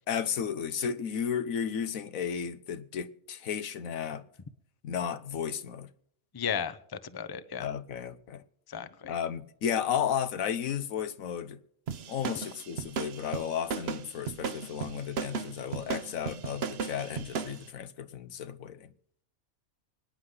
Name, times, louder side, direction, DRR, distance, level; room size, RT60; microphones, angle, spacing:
voice 1, 0.1-4.2 4.8-5.9 7.6-8.4 9.1-11.6 12.1-18.9, left 8 dB, 90° left, 1.3 m, -33 dB
voice 2, 6.3-7.7 8.7-9.1, left 7 dB, 25° left, 0.5 m, -35 dB
sound 1, 11.9-17.6, right 6 dB, 55° right, 0.9 m, -35 dB
24.5 x 9.6 x 3.9 m
omnidirectional pair, 1.4 m